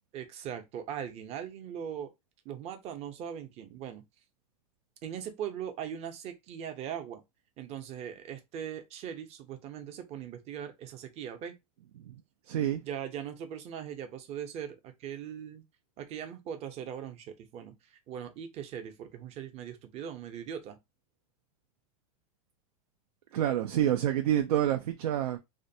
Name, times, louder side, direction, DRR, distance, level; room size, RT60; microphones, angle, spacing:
voice 1, 0.1-2.1 2.4-4.0 5.0-7.2 7.6-11.5 12.8-15.6 16.0-20.8, right 9 dB, 35° right, 0.6 m, -40 dB
voice 2, 12.5-12.8 23.3-25.4, right 11 dB, 90° right, 0.4 m, -27 dB
2.5 x 2.2 x 2.6 m
supercardioid pair, 130°, 19 cm